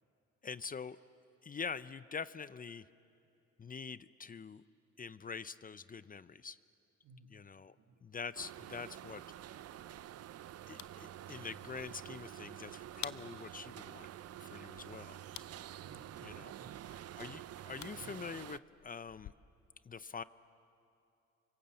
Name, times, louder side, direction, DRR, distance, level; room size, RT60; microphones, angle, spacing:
voice 1, 0.4-1.0 1.4-2.9 3.6-4.6 5.0-6.6 7.3-7.7 8.0-9.2 10.7-14.1 14.4-15.2 16.2-16.6 17.2-19.3 19.8-20.2, left 5 dB, 30° left, 16 dB, 0.6 m, -45 dB
voice 2, 7.0-7.4 7.8-8.0 15.8-16.9 17.9-18.2, right 3 dB, 80° right, 7 dB, 2.0 m, -59 dB
sound 1, 8.3-18.6, right 12 dB, 55° right, 0.6 m, -49 dB
sound 2, 9.3-19.3, left 12 dB, 65° left, 0.8 m, -54 dB
28.0 x 25.0 x 7.8 m, 2.7 s
cardioid pair, 90°, 30 cm